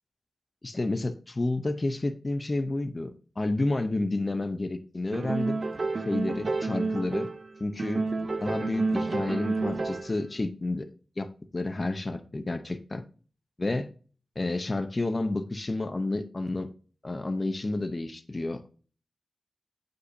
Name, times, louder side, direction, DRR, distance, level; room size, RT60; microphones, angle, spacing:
voice 1, 0.6-3.1 3.4-5.6 6.1-7.3 7.6-8.0 8.4-10.9 11.2-13.0 13.6-13.9 14.4-16.7 17.0-18.7, left 2 dB, 30° left, 0.7 m, -30 dB
sound 1, 5.1-7.5 7.8-10.2, right 3 dB, 45° right, 0.6 m, -30 dB
8.2 x 5.2 x 2.6 m
wide cardioid pair, 110°, 0 cm